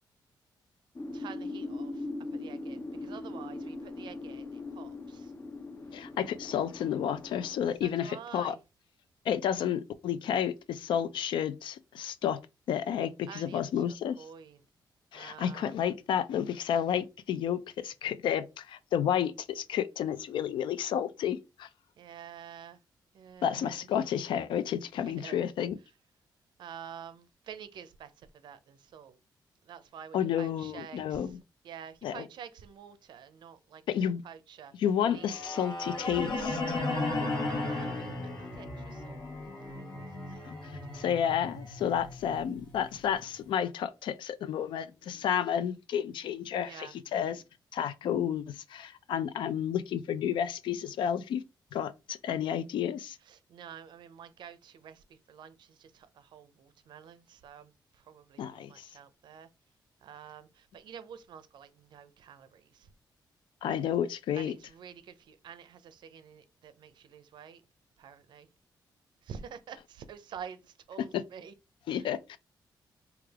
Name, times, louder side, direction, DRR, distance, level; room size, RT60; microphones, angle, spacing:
sound 1, 0.9-7.6, left 2 dB, 30° left, 0.5 m, -40 dB
voice 1, 1.1-5.3 7.8-8.6 13.3-14.6 15.1-15.7 22.0-22.8 23.1-23.9 25.1-25.4 26.6-28.1 28.4-29.2 29.7-31.3 31.6-34.7 35.1-35.3 36.7-39.3 39.6-39.7 40.9-41.0 46.6-46.9 53.3-57.7 58.1-59.5 60.0-62.9 64.4-67.6 68.0-68.5 69.2-71.5, right 8 dB, 75° right, 0.4 m, -48 dB
voice 2, 5.9-8.6 9.3-12.4 12.7-14.2 15.1-21.7 23.4-25.8 30.1-31.4 32.0-32.3 33.9-34.2 34.8-36.8 40.4-47.4 47.7-51.4 51.7-53.2 58.4-58.9 63.6-64.6 71.0-71.2 71.9-72.4, left 9 dB, 85° left, 0.3 m, -31 dB
sound 2, 35.1-43.2, left 2 dB, 60° left, 1.1 m, -36 dB
3.3 x 2.3 x 3.4 m
wide cardioid pair, 135°, 8 cm